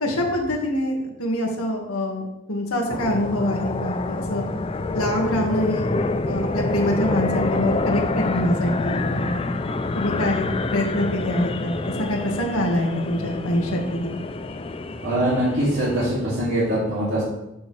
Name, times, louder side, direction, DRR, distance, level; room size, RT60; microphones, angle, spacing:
voice 1, 0.0-4.5 4.9-5.9 6.3-9.4 10.0-14.1, left 1 dB, 90° left, 1 dB, 1.9 m, -25 dB
sound 1, 2.9-16.1, left 2 dB, 25° left, 0.4 m, -27 dB
voice 2, 15.0-17.2, right 1 dB, 60° right, -9 dB, 2.8 m, -22 dB
12.5 x 6.5 x 3.4 m, 0.89 s
head